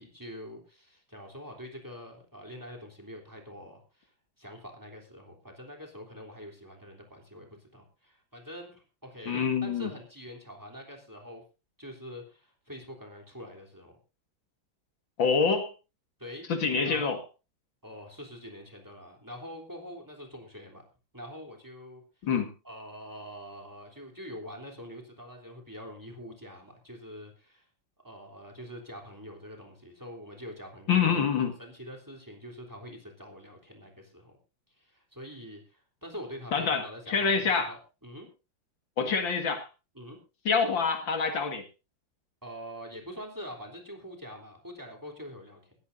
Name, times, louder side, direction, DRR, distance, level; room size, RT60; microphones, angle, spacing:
voice 1, 0.0-4.1 4.4-11.4 11.8-14.0 16.2-17.2 17.8-20.8 21.1-22.0 22.6-27.7 28.0-34.4 34.8-38.3 39.9-40.2 42.4-45.7, equal, 10° right, 2 dB, 3.3 m, -45 dB
voice 2, 9.3-9.9 15.2-15.7 16.5-17.2 22.2-22.5 30.9-31.5 36.5-37.7 39.0-39.7 40.5-41.6, left 5 dB, 75° left, 6 dB, 2.6 m, -26 dB
19.5 x 14.5 x 2.6 m, 0.30 s
omnidirectional pair, 2.1 m